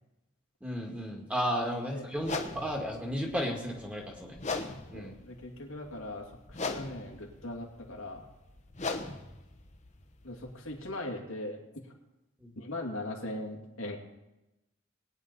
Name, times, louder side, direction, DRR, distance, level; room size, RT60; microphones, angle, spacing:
voice 1, 0.6-4.6 4.9-5.1 12.4-12.5, equal, 5° right, 0 dB, 1.8 m, -34 dB
sound 1, 2.2-10.9, left 3 dB, 35° left, 0.9 m, -40 dB
voice 2, 4.9-8.3 10.2-11.6 12.6-14.0, left 1 dB, 90° left, 1 dB, 2.3 m, -39 dB
20.5 x 9.4 x 4.1 m, 0.98 s
head